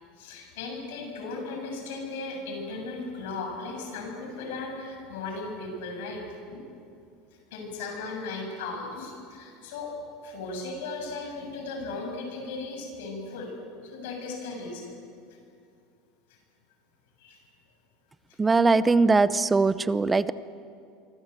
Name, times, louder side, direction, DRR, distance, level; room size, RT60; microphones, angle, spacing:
voice 1, 0.2-6.6 7.5-9.9 10.2-13.5 13.8-15.0 17.2-17.4, left 3 dB, 85° left, 2 dB, 7.3 m, -36 dB
voice 2, 18.4-20.3, right 3 dB, 10° right, 15 dB, 0.6 m, -21 dB
27.5 x 24.0 x 8.2 m, 2.4 s
cardioid pair, 170°, 0 cm